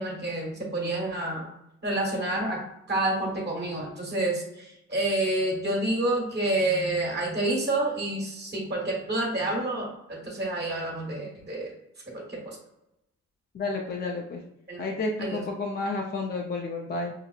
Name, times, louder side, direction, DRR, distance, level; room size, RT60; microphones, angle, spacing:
voice 1, 0.0-1.5 1.8-11.7 12.1-12.6 14.7-14.9 15.2-15.4, right 2 dB, 35° right, -2 dB, 1.4 m, -29 dB
voice 2, 13.5-14.4 14.8-17.1, left 3 dB, 35° left, 1 dB, 0.5 m, -31 dB
5.6 x 2.1 x 2.3 m, 0.86 s
cardioid pair, 90°, 30 cm